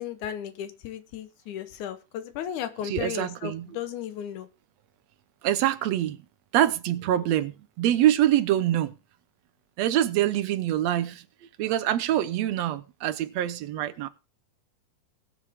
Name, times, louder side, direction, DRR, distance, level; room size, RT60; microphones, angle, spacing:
voice 1, 0.0-4.5, left 10 dB, 75° left, 2.3 m, -35 dB
voice 2, 2.8-3.7 5.4-6.2 6.5-8.9 9.8-11.2 11.6-14.1, right 12 dB, 70° right, 1.7 m, -25 dB
21.0 x 7.2 x 3.6 m
omnidirectional pair, 3.6 m